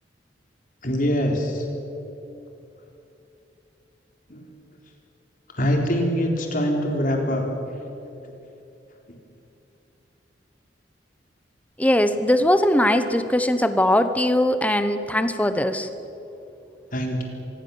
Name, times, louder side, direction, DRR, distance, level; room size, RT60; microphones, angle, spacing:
voice 1, 0.8-1.6 4.3-4.4 5.6-7.4 16.9-17.2, equal, 50° left, 1 dB, 3.9 m, -23 dB
voice 2, 11.8-15.9, left 1 dB, 10° left, 10 dB, 1.1 m, -20 dB
25.5 x 20.5 x 7.2 m, 2.9 s
head